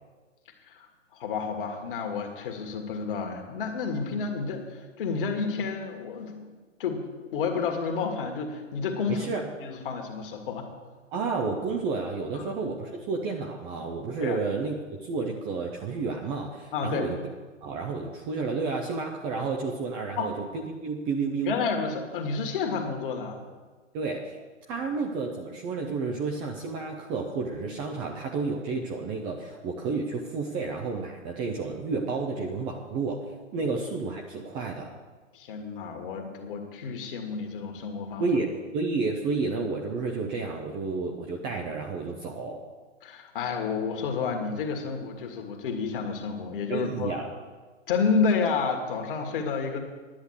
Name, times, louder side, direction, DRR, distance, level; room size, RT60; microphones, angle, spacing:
voice 1, 1.1-6.5 6.8-9.3 9.6-10.7 12.3-12.5 14.2-14.4 16.7-17.1 20.2-20.3 21.4-23.4 24.7-24.9 33.6-33.7 35.3-38.3 43.0-47.2 47.9-49.8, left 5 dB, 45° left, 4 dB, 2.0 m, -30 dB
voice 2, 9.1-9.5 11.1-17.2 17.6-20.3 20.8-21.5 23.9-24.4 24.7-33.2 33.5-34.9 38.2-38.5 38.7-42.6 46.7-47.3, right 4 dB, 15° right, 1 dB, 0.5 m, -31 dB
10.5 x 8.0 x 8.2 m, 1.4 s
figure-of-eight pair, 125°, 38 cm